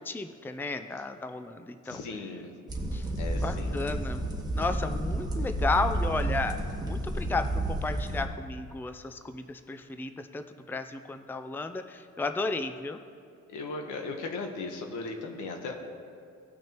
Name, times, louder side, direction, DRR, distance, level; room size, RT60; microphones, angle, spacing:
voice 1, 0.0-2.0 2.9-4.2 4.5-13.0, left 3 dB, 5° left, 8 dB, 0.4 m, -33 dB
voice 2, 1.8-2.5 3.2-3.8 13.5-15.7, left 3 dB, 85° left, 3 dB, 1.2 m, -37 dB
sound 1, 2.7-8.2, right 1 dB, 15° right, 1.4 m, -31 dB
17.5 x 6.2 x 3.0 m, 2.4 s
cardioid pair, 90°, 30 cm